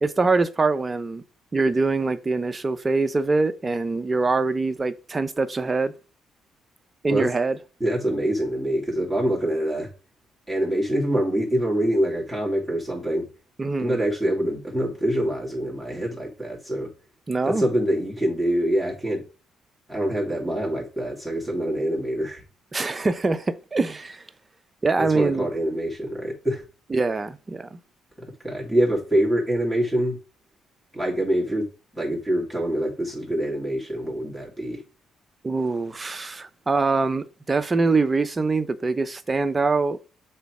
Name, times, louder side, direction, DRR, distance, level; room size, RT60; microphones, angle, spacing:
voice 1, 0.0-1.2 1.5-5.9 7.0-7.6 13.6-14.0 17.3-17.6 22.7-24.2 24.8-25.5 26.9-27.8 35.4-40.0, right 3 dB, 25° right, 0.7 m, -24 dB
voice 2, 7.8-9.9 10.5-13.3 13.8-16.9 17.4-19.2 19.9-22.4 25.0-26.6 28.2-30.2 30.9-34.8, right 1 dB, ahead, 2.9 m, -25 dB
6.7 x 4.1 x 4.8 m
supercardioid pair, 75°, 0 cm